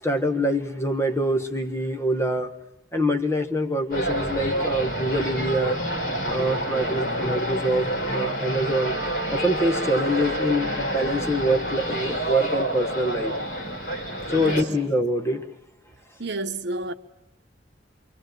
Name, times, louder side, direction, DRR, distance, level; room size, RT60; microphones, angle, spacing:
voice 1, 0.0-2.5 2.9-5.8 6.3-8.9 9.3-13.3 14.3-15.5, equal, 15° left, 1.4 m, -25 dB
sound 1, 3.9-14.6, equal, 45° left, 4.3 m, -28 dB
voice 2, 14.4-14.8 16.2-16.9, right 2 dB, 60° right, 1.1 m, -30 dB
27.0 x 23.5 x 7.9 m
head